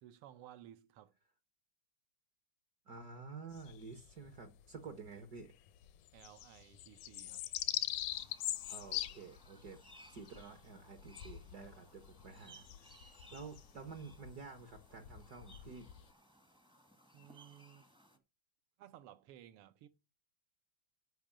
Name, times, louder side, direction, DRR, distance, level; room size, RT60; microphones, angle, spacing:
voice 1, 0.0-1.1 6.1-7.5 17.1-17.9 18.8-19.9, right 11 dB, 85° right, 1.2 m, -57 dB
voice 2, 2.9-5.5 8.7-9.8 10.1-13.0 13.3-15.9, right 4 dB, 65° right, 0.9 m, -50 dB
sound 1, 3.5-4.6 5.0-5.1 5.4-16.1, left 14 dB, 85° left, 2.1 m, -43 dB
sound 2, 8.1-18.2, right 1 dB, 5° right, 0.4 m, -62 dB
10.5 x 5.2 x 7.3 m
omnidirectional pair, 3.4 m